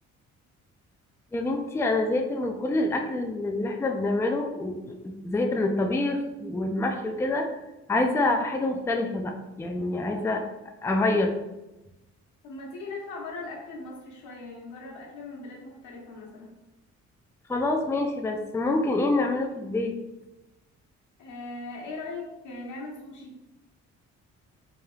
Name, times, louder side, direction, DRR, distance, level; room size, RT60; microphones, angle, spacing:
voice 1, 1.3-7.5 7.9-10.4 10.8-11.3 17.5-19.9, left 2 dB, 10° left, 3 dB, 0.4 m, -26 dB
voice 2, 12.4-16.5 21.2-23.3, left 3 dB, 85° left, -2 dB, 1.2 m, -39 dB
4.5 x 3.3 x 2.3 m, 1.0 s
cardioid pair, 90°, 30 cm